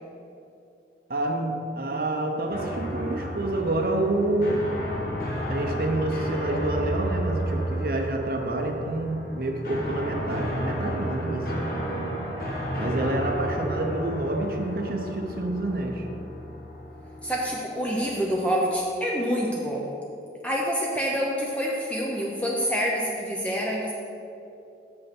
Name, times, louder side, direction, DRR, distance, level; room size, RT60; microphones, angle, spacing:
voice 1, 1.1-4.7 5.5-11.7 12.7-16.1, right 1 dB, 55° right, 4 dB, 0.7 m, -28 dB
sound 1, 2.5-18.4, equal, 50° left, 1.4 m, -32 dB
voice 2, 17.2-19.9 20.4-23.9, equal, 10° left, -3 dB, 0.6 m, -27 dB
6.5 x 5.5 x 5.9 m, 2.6 s
head